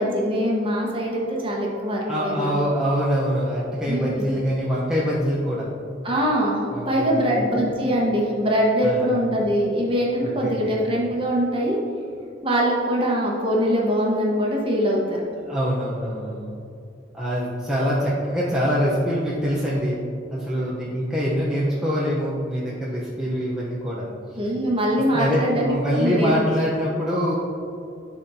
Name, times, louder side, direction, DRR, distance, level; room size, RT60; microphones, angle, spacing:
voice 1, 0.0-2.5 3.9-4.3 6.0-6.6 6.9-11.8 12.4-15.3 24.4-26.4, equal, 30° right, -3 dB, 1.1 m, -23 dB
voice 2, 2.1-5.7 6.7-7.4 8.8-9.1 10.2-10.8 15.5-16.5 17.1-20.0 20.3-24.1 24.9-27.3, equal, 5° right, -8 dB, 0.8 m, -24 dB
10.5 x 4.3 x 2.7 m, 2.6 s
head